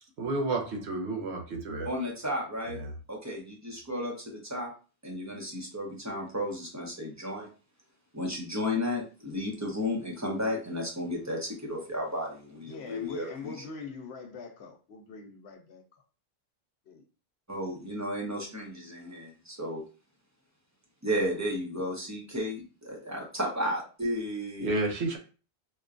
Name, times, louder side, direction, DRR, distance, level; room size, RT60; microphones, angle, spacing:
voice 1, 0.2-1.9 2.7-2.9 24.6-25.2, right 2 dB, 70° right, 2 dB, 1.0 m, -31 dB
voice 2, 1.8-2.8 3.1-4.7 5.0-7.5 8.1-13.5 17.5-19.8 21.0-24.7, left 1 dB, 20° right, -1 dB, 0.7 m, -33 dB
voice 3, 12.6-16.0 16.9-17.0, left 5 dB, 70° left, 4 dB, 0.8 m, -43 dB
4.3 x 2.2 x 2.5 m, 0.35 s
omnidirectional pair, 1.2 m